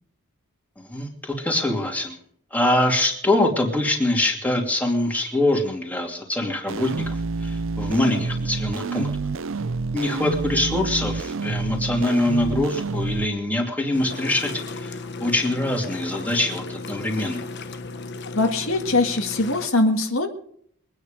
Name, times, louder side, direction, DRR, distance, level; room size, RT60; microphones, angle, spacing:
voice 1, 0.8-2.2 2.5-9.1 9.9-17.4, left 1 dB, 5° left, 0 dB, 2.7 m, -24 dB
sound 1, 6.7-13.2, right 3 dB, 60° right, 0.6 m, -28 dB
sound 2, 13.9-19.7, left 3 dB, 50° left, 1.1 m, -35 dB
voice 2, 18.3-20.3, left 2 dB, 65° left, 3 dB, 2.0 m, -21 dB
23.0 x 9.7 x 5.2 m, 0.63 s
head